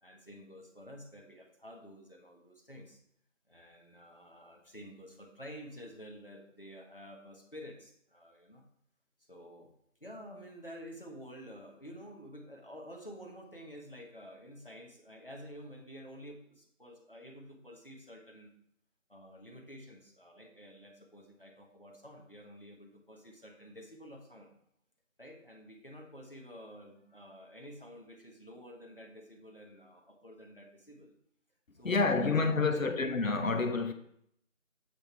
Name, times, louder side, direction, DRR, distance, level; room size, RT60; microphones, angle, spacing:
voice 1, 0.0-3.0 3.5-8.7 9.3-9.7 10.0-18.5 19.1-24.5 25.2-31.1 31.7-33.0, equal, 45° left, 1.2 m, -50 dB
voice 2, 31.8-33.9, left 4 dB, 85° left, 0.8 m, -28 dB
7.8 x 4.3 x 4.4 m
figure-of-eight pair, 180°, 39 cm